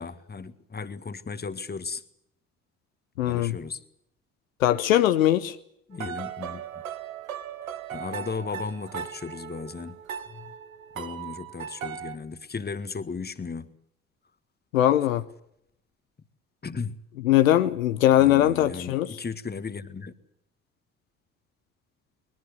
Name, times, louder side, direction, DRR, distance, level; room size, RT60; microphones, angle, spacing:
voice 1, 0.0-2.0 3.2-3.8 5.9-6.6 7.9-10.0 10.3-10.5 11.0-13.7 16.6-17.0 18.2-20.1, left 5 dB, 25° left, 1.7 m, -35 dB
voice 2, 3.2-3.6 4.6-5.6 14.7-15.2 17.2-19.2, left 12 dB, 80° left, 0.8 m, -21 dB
sound 1, 5.9-12.2, right 9 dB, 85° right, 1.0 m, -38 dB
22.0 x 21.0 x 8.2 m
figure-of-eight pair, 50°, 40 cm